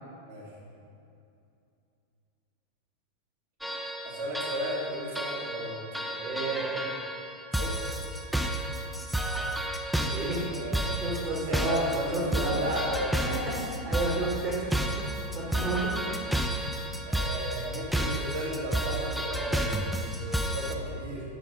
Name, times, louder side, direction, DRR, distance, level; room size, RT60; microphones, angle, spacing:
sound 1, 3.6-20.7, right 1 dB, ahead, 0.5 m, -31 dB
voice 1, 4.0-5.8 7.6-7.7 10.5-13.1 17.1-21.2, right 1 dB, 60° right, -4 dB, 2.1 m, -34 dB
voice 2, 6.2-6.7 9.9-10.5 11.0-11.8 12.1-12.6 13.2-13.3 13.7-14.7 15.3-16.1 17.6-17.7, right 2 dB, 40° right, -4 dB, 1.8 m, -31 dB
11.0 x 4.1 x 5.4 m, 2.5 s
figure-of-eight pair, 90°, 0 cm